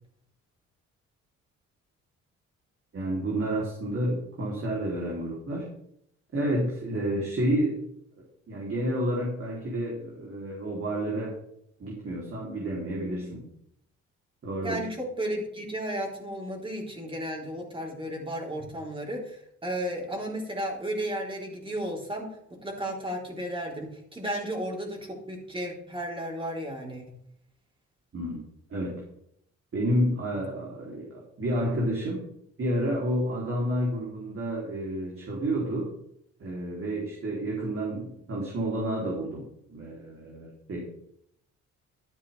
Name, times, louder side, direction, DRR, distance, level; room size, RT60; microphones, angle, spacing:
voice 1, 2.9-5.7 6.3-7.8 8.5-11.3 11.8-13.5 14.4-14.9 28.1-28.4 28.7-29.0 29.7-32.2 32.6-35.9 36.4-40.8, right 1 dB, 45° right, -3 dB, 3.5 m, -30 dB
voice 2, 14.6-27.0, right 1 dB, 15° right, -1 dB, 4.1 m, -34 dB
13.0 x 9.8 x 3.5 m, 0.71 s
cardioid pair, 90°, 30 cm